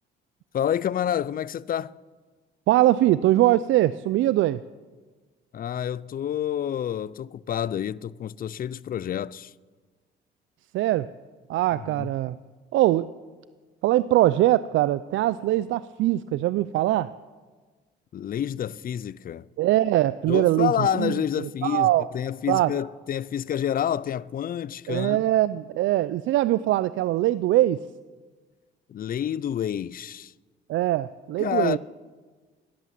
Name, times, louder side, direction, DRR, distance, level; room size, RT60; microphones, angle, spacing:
voice 1, 0.5-1.9 5.5-9.5 11.7-12.1 18.1-19.5 20.3-25.2 28.9-30.3 31.4-31.8, left 10 dB, 45° left, 0.5 m, -28 dB
voice 2, 2.7-4.6 10.7-11.1 11.5-12.4 12.7-13.1 13.8-17.1 19.6-22.0 22.5-22.7 24.9-27.8 30.7-31.8, right 15 dB, 80° right, 0.4 m, -22 dB
17.0 x 11.0 x 7.3 m
cardioid pair, 90°, 20 cm